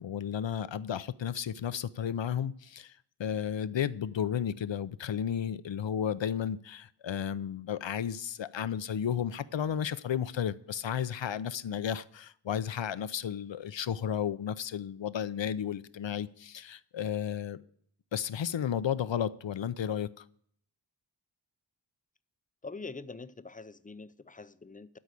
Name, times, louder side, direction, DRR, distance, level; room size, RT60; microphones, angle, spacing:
voice 1, 0.0-17.6 18.1-20.3, left 9 dB, 80° left, 0.6 m, -33 dB
voice 2, 22.6-25.0, left 4 dB, 20° left, 0.5 m, -44 dB
12.5 x 4.8 x 8.1 m
wide cardioid pair, 55°, 44 cm